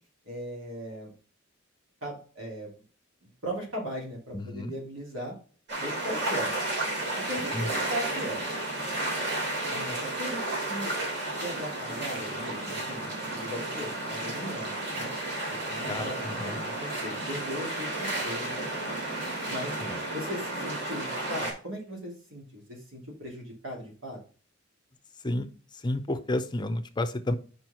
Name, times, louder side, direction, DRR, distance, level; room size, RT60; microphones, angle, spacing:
voice 1, 0.2-1.1 2.0-2.7 3.2-5.3 5.8-6.5 7.1-8.4 9.7-10.9 11.3-15.1 15.7-16.2 16.4-19.0 19.5-19.8 20.1-24.2, equal, 80° right, -1 dB, 2.9 m, -38 dB
voice 2, 4.3-4.7 7.5-7.7 15.9-16.6 19.8-20.0 25.2-25.5 25.7-27.4, left 1 dB, 20° left, 9 dB, 0.6 m, -31 dB
sound 1, 5.7-21.5, right 2 dB, 60° right, 2.9 m, -32 dB
5.3 x 4.6 x 5.6 m, 0.39 s
head